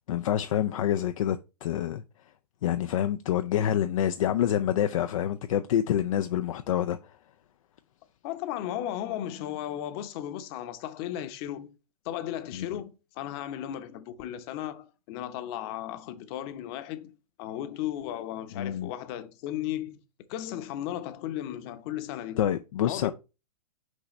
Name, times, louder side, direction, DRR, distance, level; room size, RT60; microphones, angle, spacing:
voice 1, 0.1-2.0 2.6-7.1 12.5-12.8 18.6-18.9 22.4-23.1, left 10 dB, 60° left, 0.5 m, -27 dB
voice 2, 8.2-11.7 12.0-17.1 17.4-20.0 20.3-22.5 22.9-23.1, left 12 dB, 40° left, 0.9 m, -35 dB
6.3 x 4.9 x 3.1 m
figure-of-eight pair, 110°, 20 cm